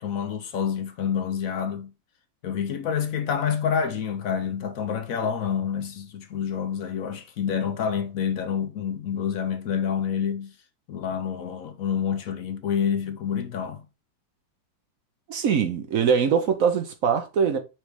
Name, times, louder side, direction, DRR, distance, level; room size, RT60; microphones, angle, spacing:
voice 1, 0.0-1.9 2.4-10.5 10.9-13.8, left 7 dB, 60° left, 0.9 m, -28 dB
voice 2, 15.3-17.6, right 7 dB, 65° right, 0.9 m, -22 dB
6.2 x 3.2 x 4.8 m
omnidirectional pair, 2.1 m